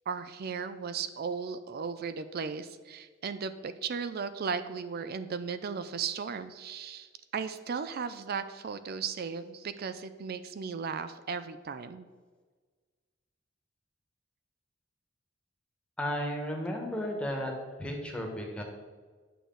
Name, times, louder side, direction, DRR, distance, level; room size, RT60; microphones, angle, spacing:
voice 1, 0.1-12.1, right 6 dB, 50° right, 12 dB, 0.4 m, -36 dB
voice 2, 16.0-17.5 17.8-18.6, equal, 5° left, 0 dB, 1.4 m, -34 dB
9.1 x 6.4 x 3.9 m, 1.4 s
head